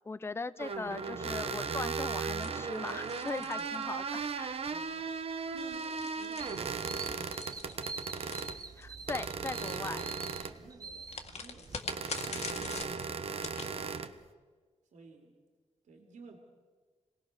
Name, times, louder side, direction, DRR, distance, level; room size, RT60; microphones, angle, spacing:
voice 1, 0.0-4.6 8.8-10.0, left 3 dB, 20° left, 15 dB, 0.6 m, -39 dB
sound 1, 0.6-8.6 9.1-10.7 11.9-14.1, right 5 dB, 50° right, 1.1 m, -37 dB
sound 2, 2.4-4.4 5.4-9.1 11.1-13.7, left 5 dB, 60° left, 1.9 m, -44 dB
voice 2, 3.3-3.7 4.7-8.0 10.4-14.2 14.9-15.4 15.8-16.4, right 3 dB, 85° right, 3 dB, 2.7 m, -55 dB
sound 3, 6.4-11.8, right 4 dB, 30° right, 0.8 m, -45 dB
28.0 x 19.5 x 6.6 m, 1.5 s
wide cardioid pair, 180°, 12 cm